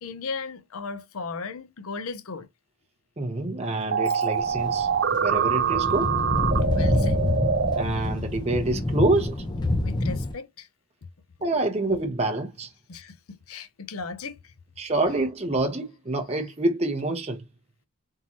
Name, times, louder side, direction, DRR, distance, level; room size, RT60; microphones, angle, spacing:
voice 1, 0.0-2.5 6.7-7.2 9.7-10.7 12.9-14.5, left 4 dB, 70° left, 0.6 m, -36 dB
voice 2, 3.2-6.1 7.7-9.4 11.4-12.7 14.8-17.4, right 2 dB, 30° right, 0.7 m, -27 dB
sound 1, 3.9-7.8, right 6 dB, 50° right, 0.4 m, -25 dB
sound 2, 4.4-10.3, left 1 dB, 20° left, 0.5 m, -27 dB
3.7 x 2.7 x 2.9 m
head